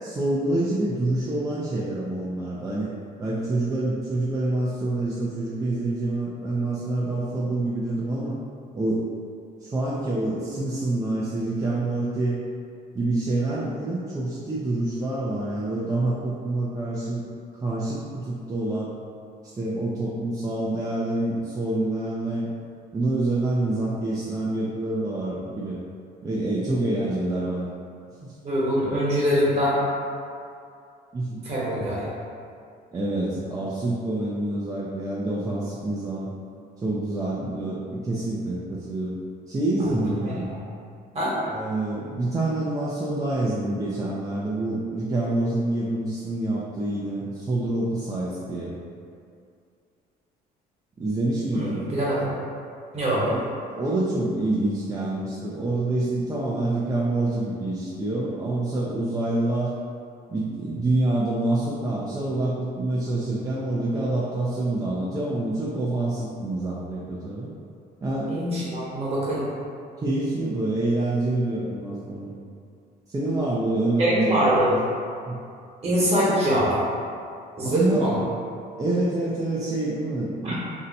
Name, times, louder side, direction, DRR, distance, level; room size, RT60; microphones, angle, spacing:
voice 1, 0.0-2.9 3.2-8.4 8.7-9.1 9.6-12.4 12.9-17.2 17.6-18.9 19.5-22.5 22.9-25.8 26.2-27.7 28.2-28.3 31.1-31.5 32.9-36.3 36.8-39.2 39.5-40.5 41.5-48.7 51.0-51.9 53.3-59.7 60.3-67.5 68.0-68.7 70.0-72.3 73.1-74.8 75.2-75.4 77.6-78.1 78.8-80.5, right 2 dB, 20° right, -7 dB, 0.4 m, -27 dB
voice 2, 28.4-29.8 31.4-32.1 39.9-40.3 41.1-41.3 51.5-52.3 52.9-53.3 68.3-69.5 74.0-74.7 75.8-76.8 77.6-78.1 80.4-80.5, equal, 40° right, -7 dB, 1.1 m, -23 dB
2.7 x 2.1 x 3.9 m, 2.4 s
cardioid pair, 110°, 17 cm